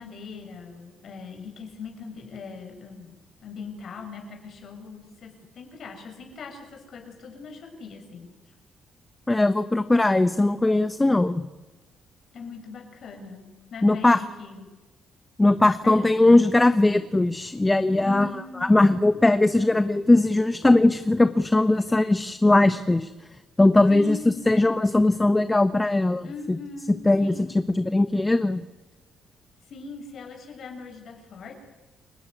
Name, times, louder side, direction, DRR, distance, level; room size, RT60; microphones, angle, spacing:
voice 1, 0.0-3.2 3.4-8.3 12.3-14.7 15.8-16.1 18.0-19.0 23.9-24.6 26.2-26.9 27.2-27.5 29.7-31.5, left 4 dB, 60° left, 4 dB, 6.5 m, -40 dB
voice 2, 9.3-11.4 13.8-14.2 15.4-23.1 23.6-24.2 24.5-26.6 27.0-28.6, left 2 dB, 15° left, 11 dB, 1.1 m, -20 dB
29.5 x 17.0 x 9.5 m, 1.2 s
cardioid pair, 90°, 0 cm